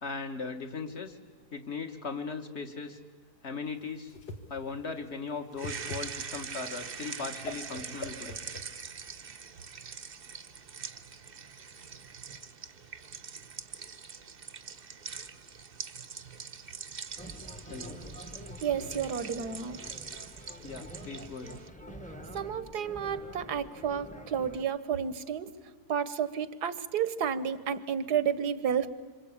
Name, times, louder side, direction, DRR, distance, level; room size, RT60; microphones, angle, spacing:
voice 1, 0.0-1.2 1.5-3.0 3.4-4.1 4.5-8.4 17.7-18.0 20.6-21.6, left 4 dB, 40° left, 6 dB, 2.1 m, -38 dB
Whoosh swoosh swish, 3.7-9.2, left 2 dB, 80° left, 2.6 m, -44 dB
sound 1, 5.6-21.7, right 6 dB, 40° right, 1.0 m, -43 dB
sound 2, 17.2-24.6, equal, 5° left, 1.2 m, -46 dB
voice 2, 18.6-19.8 22.3-25.5 25.9-28.9, right 8 dB, 75° right, 14 dB, 1.6 m, -31 dB
27.0 x 25.5 x 8.7 m, 1.5 s
omnidirectional pair, 1.7 m